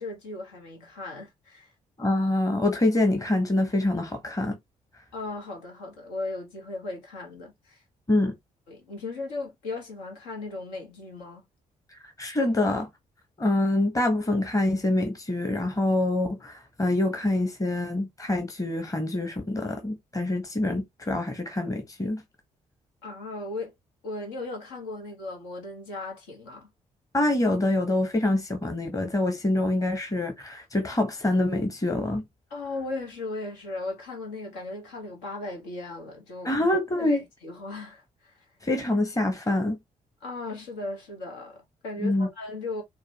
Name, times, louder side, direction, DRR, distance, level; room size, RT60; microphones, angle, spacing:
voice 1, 0.0-1.7 5.1-7.8 8.7-11.4 23.0-23.7 24.0-26.7 32.5-36.5 37.0-38.4 40.2-42.8, left 2 dB, 70° left, 1.1 m, -37 dB
voice 2, 2.0-4.6 8.1-8.3 12.0-12.9 13.4-22.2 27.1-32.2 36.4-37.2 38.6-39.8 42.0-42.3, left 2 dB, 20° left, 1.0 m, -25 dB
4.8 x 2.2 x 2.8 m
figure-of-eight pair, 40°, 19 cm